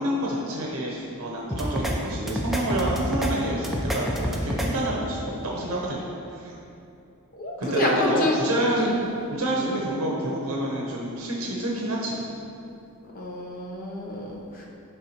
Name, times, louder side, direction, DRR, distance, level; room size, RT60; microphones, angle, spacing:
voice 1, 0.0-6.0 6.3-6.5 7.6-8.9 9.3-12.2, right 1 dB, 70° right, -3 dB, 0.7 m, -28 dB
sound 1, 1.5-1.9 2.3-3.3 3.6-4.7, equal, ahead, 0.4 m, -27 dB
voice 2, 7.4-8.4 8.7-9.0 9.5-9.7 13.1-14.7, left 1 dB, 40° left, -3 dB, 0.8 m, -28 dB
10.5 x 3.6 x 2.9 m, 2.7 s
head